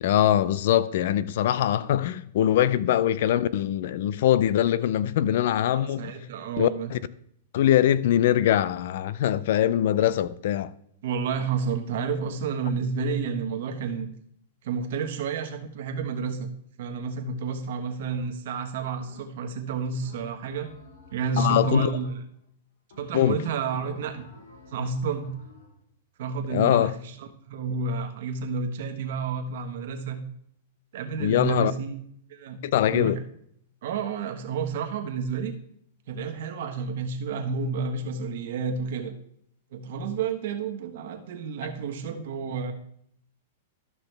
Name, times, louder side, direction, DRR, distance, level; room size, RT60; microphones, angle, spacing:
voice 1, 0.0-6.1 6.6-7.0 7.5-10.7 21.4-21.9 23.1-23.4 26.5-26.9 31.2-31.7 32.6-33.2, left 11 dB, 60° left, 0.4 m, -22 dB
voice 2, 5.7-6.9 11.0-14.1 14.6-16.5 16.8-20.7 21.1-22.2 23.0-24.3 24.7-25.3 26.2-30.2 30.9-32.0 32.3-32.6 32.9-33.2 33.8-35.6 36.1-39.1 39.7-42.7, right 5 dB, 65° right, 1.3 m, -30 dB
sound 1, 18.1-18.6 19.0-19.6 20.0-22.5 22.9-23.4 23.9-25.8, left 2 dB, 90° left, 1.9 m, -51 dB
12.5 x 5.9 x 3.3 m
supercardioid pair, 155°, 0 cm